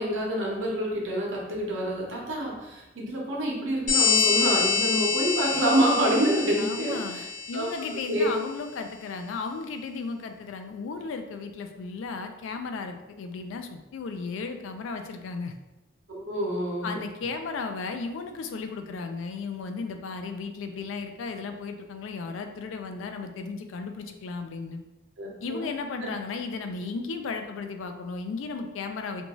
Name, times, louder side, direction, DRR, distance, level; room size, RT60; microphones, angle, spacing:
voice 1, 0.0-7.3 7.5-8.3 16.1-17.0 25.2-25.7 26.0-26.1, right 1 dB, 85° right, -3 dB, 0.8 m, -27 dB
sound 1, 3.9-8.2, left 5 dB, 40° left, 0.6 m, -26 dB
voice 2, 6.6-7.2 7.5-15.5 16.8-24.8 25.4-29.3, left 4 dB, 80° left, 6 dB, 0.3 m, -35 dB
2.6 x 2.3 x 3.0 m, 1.0 s
head